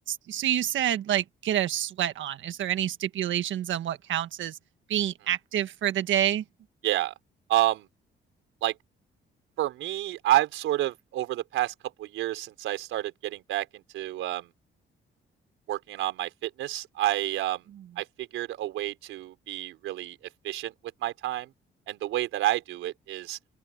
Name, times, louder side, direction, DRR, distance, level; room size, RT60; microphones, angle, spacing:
voice 1, 0.1-4.5 4.9-6.4, right 11 dB, 75° right, 1.6 m, -28 dB
voice 2, 6.8-7.1 7.5-7.9 8.6-8.7 9.6-14.5 15.7-17.6 18.0-20.2 20.4-20.7 21.0-21.5 21.9-23.4, right 14 dB, 90° right, 4.7 m, -29 dB
open air
cardioid pair, 90°, 20 cm